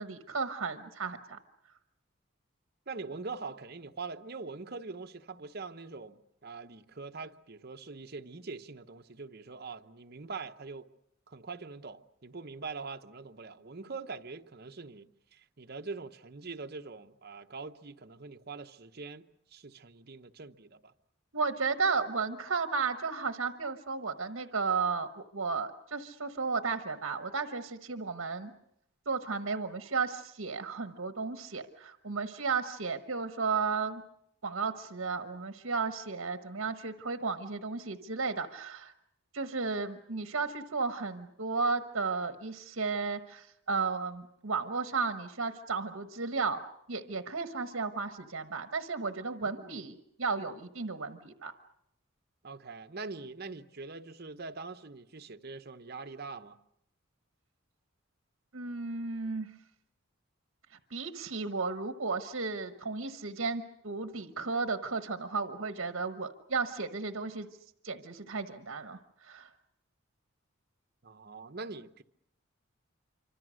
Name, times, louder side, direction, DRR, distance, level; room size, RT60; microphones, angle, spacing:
voice 1, 0.0-1.4 21.3-28.5 29.1-34.0 34.4-38.9 39.3-51.5 58.5-59.5 60.9-67.5 67.8-69.5, right 4 dB, 70° right, 1.3 m, -34 dB
voice 2, 2.9-10.9 11.3-20.9 49.4-49.8 52.4-56.6 71.0-72.0, right 4 dB, 50° right, 1.0 m, -43 dB
26.5 x 25.0 x 6.4 m
head